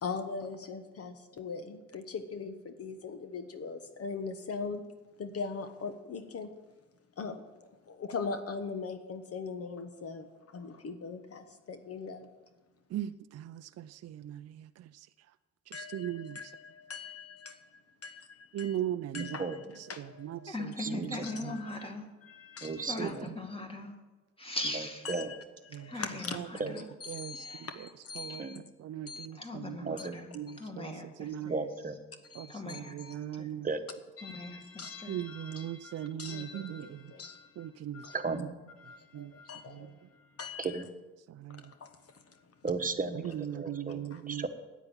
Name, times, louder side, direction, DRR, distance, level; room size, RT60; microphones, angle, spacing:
voice 1, 0.0-4.9 5.2-6.5 7.2-12.3 15.7-18.8 19.1-19.6 19.9-20.5 21.2-21.9 22.2-22.9 25.0-25.4 25.7-26.4 27.0-28.6 29.1-29.3 30.5-30.7 32.3-33.3 34.2-38.3 38.8-40.8 41.5-42.4 43.5-43.6 44.1-44.2, left 5 dB, 50° left, 1.2 m, -41 dB
voice 2, 12.9-14.5 15.9-16.4 18.5-19.3 20.5-20.6 20.9-21.0 25.7-25.9 27.1-27.3 28.2-28.4 28.8-29.9 30.4-30.9 31.2-31.5 32.4-33.7 35.1-36.9 37.6-38.0 39.1-39.3 41.4-41.6 43.3-44.4, right 11 dB, 55° right, 0.5 m, -38 dB
voice 3, 19.1-19.6 20.8-21.3 22.6-23.3 24.7-25.3 26.6-26.9 28.4-28.6 29.8-30.2 31.5-32.0 33.6-33.8 38.1-38.5 40.6-40.8 42.6-44.5, right 4 dB, 25° right, 1.2 m, -35 dB
voice 4, 20.5-22.1 22.9-23.9 24.4-25.1 25.8-26.9 27.3-27.7 29.3-31.5 32.5-33.0 33.3-33.5 34.2-35.2, left 2 dB, 20° left, 2.2 m, -40 dB
9.7 x 8.3 x 8.9 m
cardioid pair, 90°, 30 cm